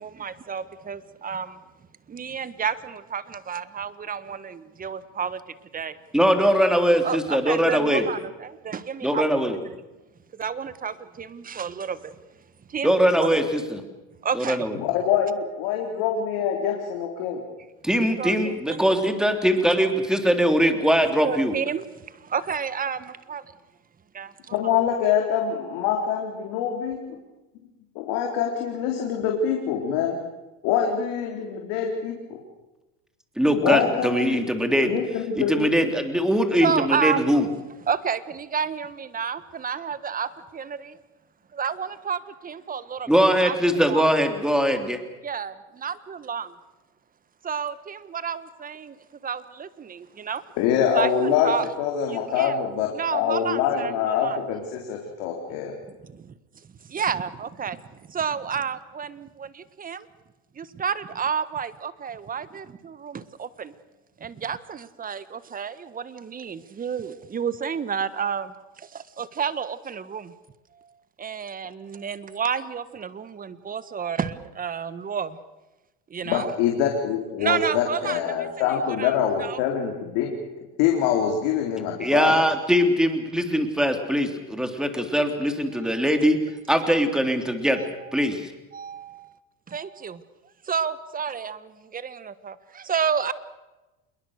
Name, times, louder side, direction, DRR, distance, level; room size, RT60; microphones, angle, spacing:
voice 1, 0.0-1.6 2.1-5.4 5.7-5.9 7.0-9.2 10.4-12.0 12.7-12.9 13.2-13.3 14.2-14.6 18.2-18.3 18.7-18.8 21.2-21.8 22.3-23.4 24.1-24.6 36.6-37.2 37.9-40.9 41.5-43.1 43.4-43.5 43.9-44.0 45.2-45.5 45.8-46.4 47.4-48.9 49.2-50.4 50.9-51.6 52.1-52.5 52.9-54.4 56.9-57.8 58.1-60.0 60.6-63.7 64.2-68.5 68.9-70.3 71.2-75.4 76.1-76.5 77.4-78.2 79.0-79.1 79.4-79.6 86.7-86.9 87.7-87.9 88.7-89.3 89.7-90.2 90.7-93.3, right 7 dB, 25° right, 14 dB, 1.5 m, -30 dB
voice 2, 6.1-8.1 9.0-9.6 12.8-13.8 14.3-14.8 17.8-21.6 33.4-34.9 35.4-37.5 43.1-45.0 82.0-86.4 86.7-87.8 88.1-88.5, equal, ahead, 6 dB, 3.3 m, -21 dB
voice 3, 14.7-17.4 24.5-27.0 28.0-30.2 30.6-32.4 33.6-34.4 34.8-35.7 50.6-51.5 51.8-55.7 76.2-80.3 80.8-82.4, left 8 dB, 70° left, 1 dB, 4.0 m, -25 dB
27.5 x 22.0 x 6.6 m, 1.1 s
supercardioid pair, 110°, 33 cm